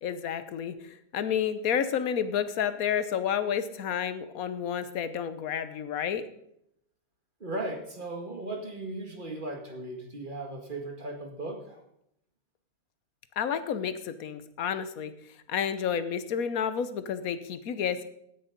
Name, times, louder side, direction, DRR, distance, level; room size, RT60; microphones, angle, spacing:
voice 1, 0.0-6.2 13.4-15.1 15.5-18.0, left 8 dB, 75° left, 12 dB, 1.3 m, -30 dB
voice 2, 7.4-11.8, right 2 dB, 35° right, 2 dB, 2.0 m, -37 dB
16.0 x 6.5 x 5.2 m, 0.76 s
omnidirectional pair, 1.5 m